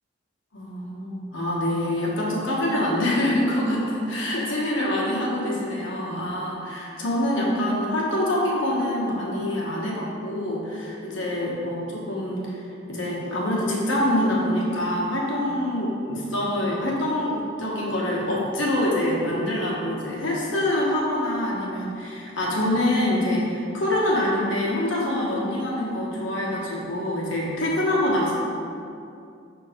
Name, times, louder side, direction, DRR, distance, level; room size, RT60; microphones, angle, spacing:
voice 1, 0.5-28.3, left 1 dB, 85° left, -4 dB, 1.4 m, -25 dB
6.2 x 3.8 x 5.1 m, 2.6 s
head